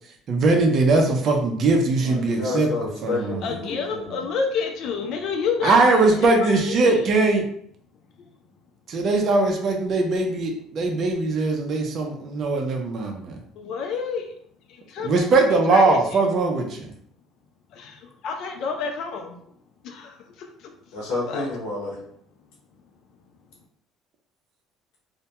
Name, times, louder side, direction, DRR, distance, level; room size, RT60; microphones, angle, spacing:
voice 1, 0.3-2.7 3.0-3.5 5.6-7.4 8.9-13.4 15.0-16.9, right 3 dB, 45° right, 2 dB, 0.5 m, -20 dB
voice 2, 2.0-4.2 20.9-22.0, left 3 dB, 85° left, -5 dB, 0.8 m, -30 dB
voice 3, 3.4-7.0 13.6-14.2 14.9-16.0 17.7-19.4 19.8-20.7 21.3-21.5, left 5 dB, 60° left, 4 dB, 0.4 m, -29 dB
2.1 x 2.1 x 2.8 m, 0.65 s
cardioid pair, 125°, 0 cm